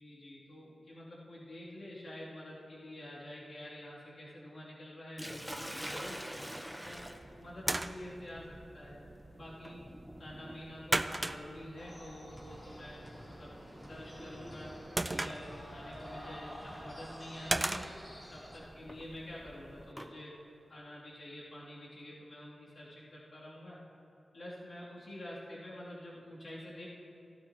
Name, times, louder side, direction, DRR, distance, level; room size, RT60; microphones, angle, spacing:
voice 1, 0.0-6.2 6.8-7.1 7.3-9.8 10.2-13.5 13.8-14.7 15.1-17.9 18.3-20.4 20.7-23.8 24.3-26.9, left 1 dB, 60° left, -8 dB, 2.8 m, -48 dB
Sink (filling or washing), 5.2-15.1 16.2-16.5 17.1-17.2 18.6-20.1, equal, ahead, 0.8 m, -47 dB
sound 1, 6.9-19.9, right 2 dB, 25° right, 0.4 m, -40 dB
sound 2, 11.8-18.6, equal, 25° left, 2.9 m, -49 dB
16.0 x 12.0 x 2.9 m, 2.8 s
cardioid pair, 65°, 0 cm